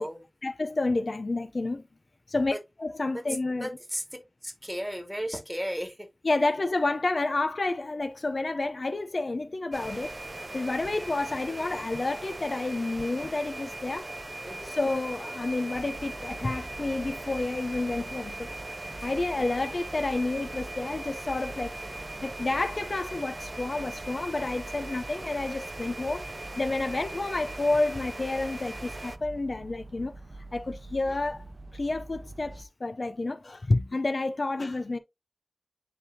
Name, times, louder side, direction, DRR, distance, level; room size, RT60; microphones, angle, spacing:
voice 1, 0.4-1.8 2.3-3.7 6.2-10.2 10.5-14.1 14.6-18.5 19.0-21.8 22.2-30.1 30.5-31.4 31.7-35.0, left 2 dB, 75° left, 0.6 m, -30 dB
voice 2, 3.6-4.0 4.4-6.1 14.4-14.7, equal, 5° right, 2.6 m, -35 dB
sound 1, 9.7-29.2, right 2 dB, 45° right, 0.5 m, -39 dB
sound 2, 15.7-32.6, right 2 dB, 65° right, 0.9 m, -46 dB
10.0 x 3.5 x 2.7 m
wide cardioid pair, 60°, 0 cm